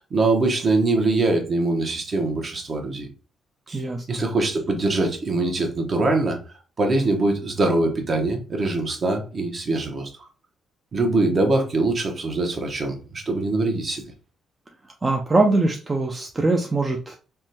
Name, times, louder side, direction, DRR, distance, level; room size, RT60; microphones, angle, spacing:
voice 1, 0.0-3.1 3.7-6.4 6.8-10.1 10.9-14.0, right 2 dB, 40° right, 3 dB, 0.8 m, -23 dB
voice 2, 3.7-4.0 15.0-17.2, right 2 dB, 25° right, 1 dB, 0.4 m, -22 dB
3.4 x 2.2 x 2.7 m, 0.36 s
cardioid pair, 90°, 0 cm